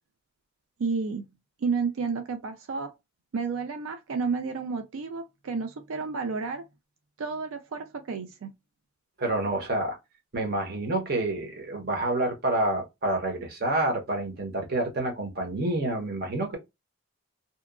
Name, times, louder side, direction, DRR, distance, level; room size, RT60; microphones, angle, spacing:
voice 1, 0.8-1.2 1.6-2.9 3.3-6.6 7.2-8.5, right 4 dB, 85° right, 0.4 m, -31 dB
voice 2, 9.2-10.0 10.3-16.6, right 2 dB, 50° right, 0.9 m, -28 dB
2.8 x 2.3 x 2.3 m
head